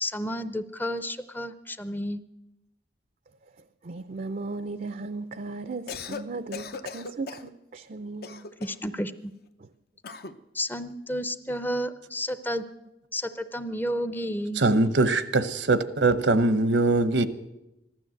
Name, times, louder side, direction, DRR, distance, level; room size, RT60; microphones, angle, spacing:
voice 1, 0.0-2.2 8.6-9.3 10.5-12.6 13.1-14.6, equal, 10° left, 0.6 m, -31 dB
voice 2, 3.8-8.4, right 3 dB, 45° right, 0.5 m, -36 dB
Cough, 5.7-6.3 6.5-7.5 8.2-8.9 10.0-10.4, left 5 dB, 55° left, 0.7 m, -38 dB
voice 3, 14.6-17.3, right 2 dB, 80° right, 0.9 m, -22 dB
15.0 x 12.5 x 7.8 m
head